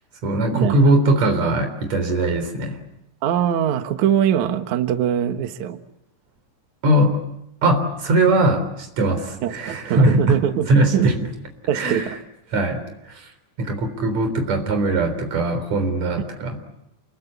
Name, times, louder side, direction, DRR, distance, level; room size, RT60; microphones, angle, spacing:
voice 1, 0.2-2.8 6.8-7.2 7.6-10.2 10.7-11.2 11.7-12.1 12.5-12.8 13.1-13.3 13.6-16.6, right 2 dB, 35° right, 7 dB, 4.5 m, -20 dB
voice 2, 3.2-5.8 9.4-11.1 11.7-12.2, right 10 dB, 85° right, 7 dB, 1.6 m, -22 dB
29.0 x 23.0 x 8.2 m, 0.81 s
omnidirectional pair, 5.8 m